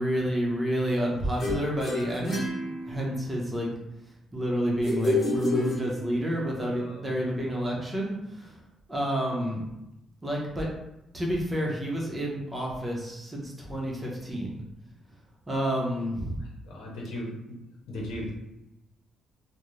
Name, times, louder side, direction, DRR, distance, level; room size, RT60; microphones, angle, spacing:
voice 1, 0.0-2.5 2.8-3.7 4.3-8.6 8.9-9.6 10.2-10.7 11.1-14.6 15.5-16.4, equal, 20° right, -2 dB, 0.8 m, -29 dB
sound 1, 1.4-3.3 4.8-6.4, left 2 dB, 45° left, 1.2 m, -30 dB
voice 2, 16.7-17.4 17.9-18.3, left 1 dB, 90° left, -2 dB, 0.7 m, -36 dB
2.4 x 2.1 x 3.1 m, 0.89 s
cardioid pair, 90°, 0 cm